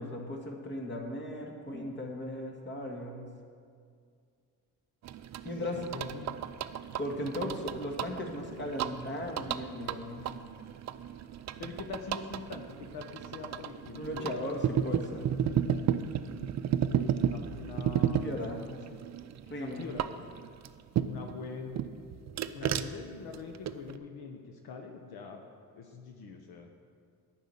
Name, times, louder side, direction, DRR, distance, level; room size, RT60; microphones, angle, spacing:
voice 1, 0.0-3.3 5.4-5.8 7.0-10.3 14.0-15.3 18.2-18.6 19.5-19.9, left 1 dB, 30° left, 1 dB, 1.9 m, -37 dB
sound 1, 5.0-21.4 21.8-24.0, right 9 dB, 45° right, 0.5 m, -34 dB
voice 2, 5.7-6.4 7.4-7.6 11.6-14.4 16.3-16.5 16.8-19.0 19.6-20.3 21.1-21.8 22.5-25.4 25.8-26.7, left 5 dB, 65° left, 3 dB, 1.1 m, -44 dB
10.0 x 6.1 x 8.6 m, 2.2 s
cardioid pair, 95°, 39 cm